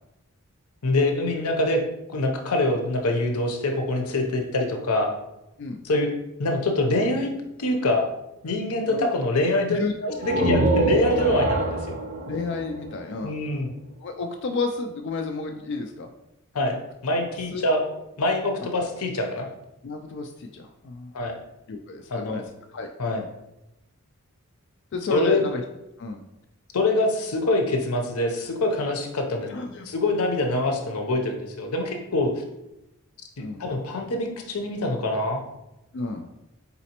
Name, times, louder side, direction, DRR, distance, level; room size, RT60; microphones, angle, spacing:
voice 1, 0.8-1.8 2.1-5.1 5.8-6.1 6.4-7.3 7.6-8.1 8.4-9.8 10.2-12.0 13.2-13.7 16.5-16.8 17.0-17.8 18.2-19.5 21.1-21.3 22.1-22.4 23.0-23.2 25.1-25.4 26.7-29.5 29.8-32.3 33.4-35.4, left 2 dB, 80° left, 4 dB, 0.7 m, -24 dB
voice 2, 9.7-10.6 12.3-13.3 14.0-16.1 17.5-17.6 19.8-21.1 21.7-23.3 24.9-25.6 26.0-26.2 29.5-29.9 33.4-33.6 35.9-36.3, left 3 dB, 50° left, 4 dB, 0.3 m, -31 dB
sound 1, 10.1-13.8, right 2 dB, 35° right, 0.5 m, -25 dB
4.1 x 4.0 x 2.9 m, 0.90 s
head